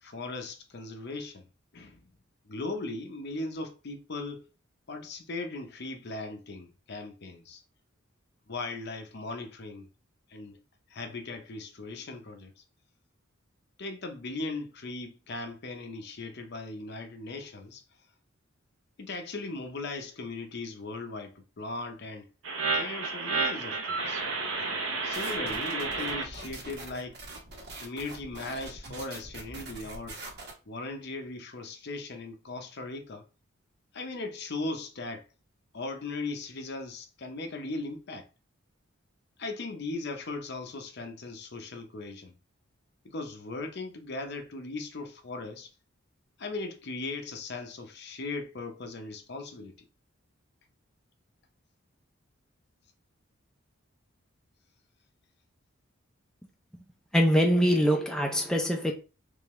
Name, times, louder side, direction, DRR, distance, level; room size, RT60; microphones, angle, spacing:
voice 1, 0.0-1.5 1.7-2.0 2.5-4.5 4.9-7.6 8.5-9.9 10.3-10.6 10.9-12.6 13.8-17.8 19.0-22.3 22.7-24.2 25.0-27.2 27.8-30.2 30.7-33.2 33.9-35.3 35.7-38.3 39.4-42.3 43.0-45.7 46.4-49.9, left 3 dB, 55° left, 0.7 m, -38 dB
sound 1, 22.4-26.2, right 3 dB, 85° right, 1.0 m, -31 dB
sound 2, 25.1-30.5, right 2 dB, 55° right, 1.2 m, -43 dB
voice 2, 57.1-58.9, equal, 5° left, 0.5 m, -23 dB
3.6 x 3.4 x 3.1 m
head